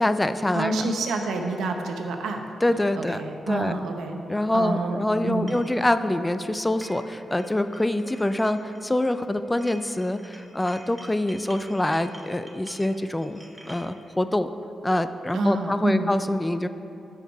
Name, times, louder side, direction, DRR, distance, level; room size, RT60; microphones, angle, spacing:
voice 1, 0.0-0.7 2.6-3.2 3.5-3.7 4.3-13.4 13.6-14.5 14.8-16.7, left 1 dB, 15° left, 11 dB, 0.3 m, -25 dB
voice 2, 0.5-2.4 3.0-4.2 4.5-5.0 5.2-5.5 15.3-16.1, right 3 dB, 85° right, 4 dB, 0.7 m, -27 dB
sound 1, 5.5-5.7 6.6-7.1 7.4-9.3 9.6-13.9, right 1 dB, 10° right, 1.1 m, -47 dB
10.5 x 4.7 x 4.6 m, 2.8 s
cardioid pair, 85°, 0 cm